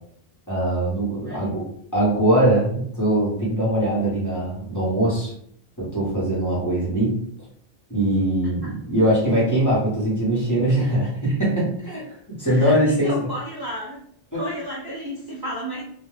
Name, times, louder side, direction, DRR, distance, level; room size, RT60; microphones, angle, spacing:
voice 1, 0.5-1.6 1.9-5.3 5.8-7.1 7.9-12.0 12.3-13.3 14.3-14.5, right 1 dB, 20° left, -6 dB, 0.9 m, -21 dB
voice 2, 1.2-1.7 12.5-14.0 14.3-15.8, equal, 35° right, -4 dB, 0.3 m, -32 dB
2.3 x 2.2 x 3.2 m, 0.62 s
omnidirectional pair, 1.0 m